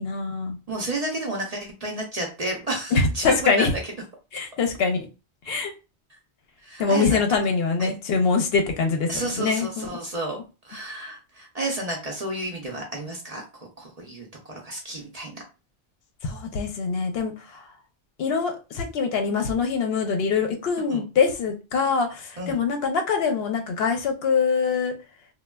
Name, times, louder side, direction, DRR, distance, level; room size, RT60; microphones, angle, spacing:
voice 1, 0.0-0.6 2.9-3.7 4.3-5.1 5.5-5.7 6.8-9.9 16.2-17.6 18.2-24.9, left 5 dB, 70° left, 5 dB, 0.8 m, -24 dB
voice 2, 0.7-3.7 6.6-7.2 7.8-7.9 9.1-15.4 20.9-21.0 22.4-22.6, right 1 dB, 45° right, 0 dB, 0.6 m, -31 dB
3.2 x 2.2 x 2.2 m, 0.30 s
omnidirectional pair, 1.1 m